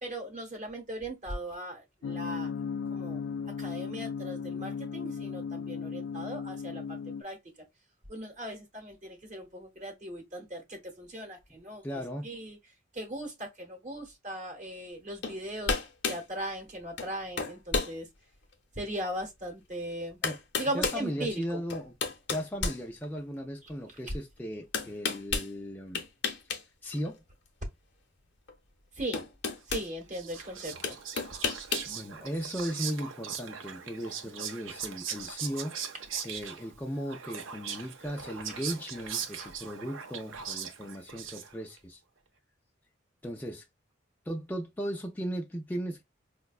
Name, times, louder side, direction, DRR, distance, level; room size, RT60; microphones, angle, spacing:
voice 1, 0.0-2.5 2.9-3.2 3.6-7.4 8.1-11.8 12.2-12.6 12.9-15.7 16.1-18.1 18.8-20.2 20.5-21.6 24.1-24.2 28.9-29.2 29.7-31.0 38.5-38.6 39.4-39.5, right 1 dB, 40° right, 0.9 m, -38 dB
sound 1, 2.0-7.2, left 6 dB, 85° left, 0.3 m, -36 dB
voice 2, 11.8-12.3 20.2-20.4 20.7-21.9 22.3-26.0 26.8-27.2 31.8-35.8 36.2-42.0 43.2-43.6 44.3-46.0, equal, 10° left, 0.4 m, -37 dB
sound 2, 15.2-15.4 15.7-16.2 17.0-17.1 17.4-17.9 18.5-18.6 19.7-19.8 20.2-21.0 21.7-23.4 24.7-25.5 25.9-26.6 26.9-27.1 28.5-28.6 29.1-29.9 30.8-31.9, left 4 dB, 60° left, 0.7 m, -31 dB
Whispering, 29.8-41.8, right 7 dB, 75° right, 0.6 m, -40 dB
4.9 x 2.2 x 2.3 m
head